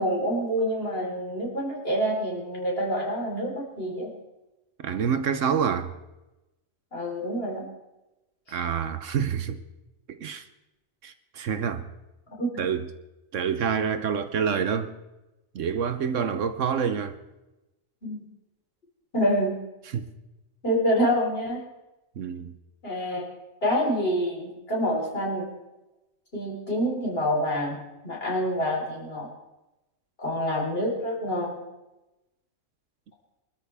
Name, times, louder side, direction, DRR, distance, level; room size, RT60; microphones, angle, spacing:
voice 1, 0.0-4.1 6.9-7.7 8.5-8.6 12.4-12.6 18.0-18.3 19.1-19.5 20.6-21.6 22.8-23.2 23.6-25.5 26.3-27.8 28.0-29.3 30.2-31.6, equal, 45° left, 4.4 m, -27 dB
voice 2, 4.8-5.9 8.5-9.6 10.1-10.4 11.0-11.8 12.6-12.9 13.3-14.9 15.5-17.2 19.9-20.1 22.2-22.5, right 7 dB, 70° right, 1.2 m, -27 dB
24.0 x 13.0 x 3.5 m
omnidirectional pair, 1.4 m